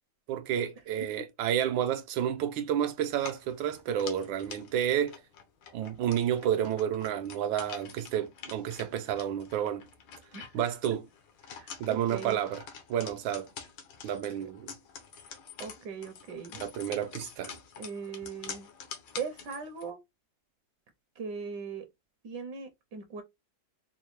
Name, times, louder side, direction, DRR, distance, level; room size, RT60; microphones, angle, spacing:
voice 1, 0.3-5.2 5.7-9.8 10.5-11.0 11.8-12.6 12.9-13.5 14.0-14.7 16.5-17.5, right 10 dB, 85° right, 1.4 m, -30 dB
sound 1, 3.1-19.9, left 7 dB, 75° left, 1.6 m, -47 dB
voice 2, 11.4-12.4 15.6-16.6 17.8-18.7 19.2-20.0 21.2-21.9 22.2-23.2, right 5 dB, 70° right, 1.2 m, -39 dB
5.1 x 2.2 x 3.0 m
omnidirectional pair, 2.1 m